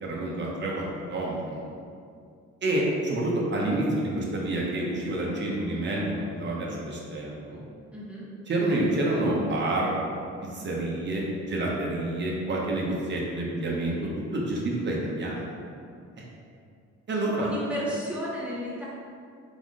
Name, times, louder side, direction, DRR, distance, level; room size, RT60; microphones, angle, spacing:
voice 1, 0.0-1.7 2.6-7.6 8.5-9.9 10.4-15.5 17.1-17.5, right 1 dB, 35° right, -3 dB, 0.9 m, -28 dB
voice 2, 7.9-8.3 17.4-18.8, equal, 5° right, -7 dB, 1.0 m, -33 dB
3.6 x 3.1 x 3.7 m, 2.3 s
cardioid pair, 90°, 30 cm